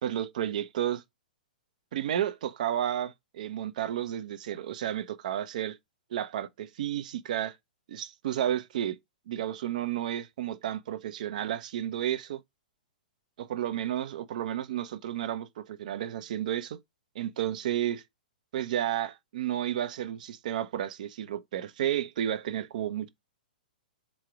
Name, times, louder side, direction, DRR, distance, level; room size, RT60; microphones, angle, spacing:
voice 1, 0.0-1.0 1.9-5.8 6.1-7.6 7.9-9.0 9.3-12.4 13.5-16.8 17.1-18.0 18.5-23.1, right 11 dB, 60° right, 0.6 m, -32 dB
3.7 x 3.1 x 4.5 m
hypercardioid pair, 115°, 5 cm